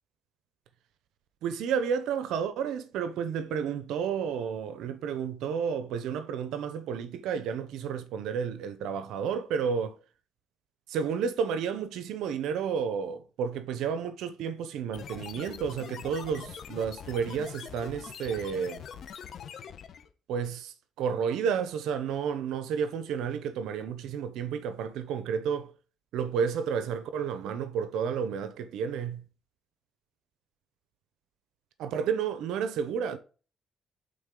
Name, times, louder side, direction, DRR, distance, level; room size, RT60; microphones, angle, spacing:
voice 1, 1.4-10.0 10.9-18.8 20.3-25.7 26.1-29.2 31.8-33.2, right 7 dB, 90° right, 0.7 m, -31 dB
sound 1, 14.9-20.1, left 8 dB, 65° left, 0.9 m, -43 dB
8.6 x 4.0 x 3.7 m
cardioid pair, 90°, 0 cm